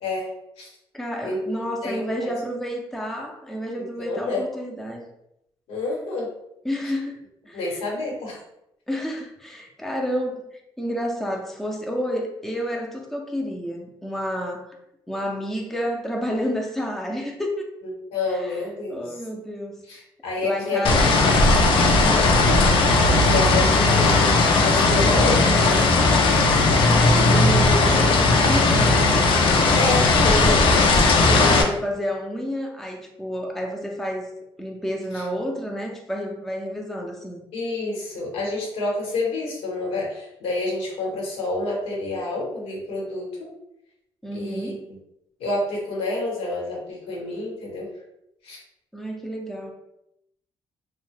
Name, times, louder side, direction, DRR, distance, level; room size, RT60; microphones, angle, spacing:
voice 1, 0.0-0.3 0.6-0.7 1.2-2.3 3.8-4.4 5.7-6.3 7.5-8.4 17.8-19.1 19.9-21.0 22.9-25.8 29.7-30.7 35.1-35.2 37.5-43.5 44.3-44.7 45.4-47.9 48.4-48.6, left 2 dB, 85° left, -2 dB, 1.0 m, -28 dB
voice 2, 0.9-5.0 6.6-7.2 7.5-7.8 8.9-10.5 10.8-14.7 15.1-17.6 18.3-18.6 18.9-20.1 20.4-21.2 22.0-22.4 26.8-29.1 31.1-34.3 34.6-37.4 44.2-44.9 48.9-49.7, equal, 5° left, 1 dB, 0.4 m, -30 dB
sound 1, 20.8-31.6, left 3 dB, 60° left, 0.5 m, -17 dB
2.7 x 2.1 x 3.1 m, 0.83 s
cardioid pair, 100°, 10 cm